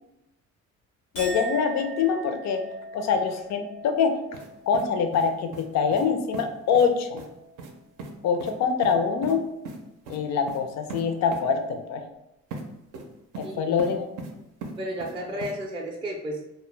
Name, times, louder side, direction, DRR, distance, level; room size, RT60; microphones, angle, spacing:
Chink clink, 1.1-7.7 8.1-8.7, right 2 dB, 85° left, 0.9 m, -42 dB
voice 1, 1.1-2.7 2.9-4.2 4.7-7.2 8.2-9.4 10.1-12.0 13.4-14.1, left 6 dB, 65° left, 6 dB, 0.4 m, -24 dB
sound 1, 4.3-4.5 4.7-5.7 5.9-6.1 6.3-6.4 6.7-6.9 7.2-7.3 7.6-7.7 8.0-8.1 8.4-8.5 8.8-9.3 9.6-9.8 10.0-10.2 10.5-10.6 10.9-11.0 11.3-11.4 12.5-12.6 12.9-13.5 13.8-14.3 14.6-15.1 15.4-15.5, right 3 dB, 85° right, 0.5 m, -38 dB
voice 2, 13.4-13.7 14.8-16.5, equal, 15° right, -1 dB, 0.4 m, -33 dB
2.2 x 2.0 x 3.1 m, 0.90 s
cardioid pair, 90°, 30 cm